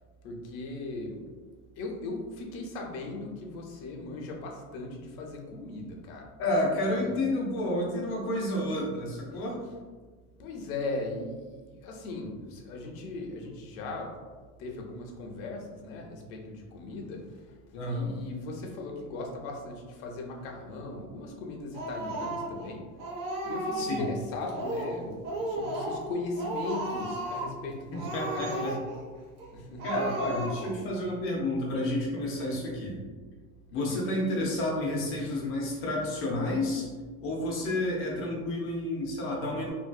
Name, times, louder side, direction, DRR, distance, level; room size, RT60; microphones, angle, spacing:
voice 1, 0.2-1.2 1.7-6.3 7.0-7.2 10.4-14.1 14.6-17.6 17.8-22.8 23.4-28.7 29.5-29.9 33.7-34.0 35.2-35.4, left 2 dB, 80° left, 1 dB, 0.7 m, -38 dB
voice 2, 6.4-9.6 17.7-18.1 23.7-24.1 27.9-28.8 29.8-33.0 33.7-36.9 37.2-39.7, left 1 dB, 35° left, -2 dB, 0.6 m, -30 dB
Speech, 21.7-22.7 23.0-24.1 24.5-25.0 25.2-26.1 26.4-27.6 27.9-29.0 29.4-29.5 29.8-30.8, right 1 dB, 80° right, 1.0 m, -34 dB
2.9 x 2.7 x 2.3 m, 1.4 s
cardioid pair, 165°, 40 cm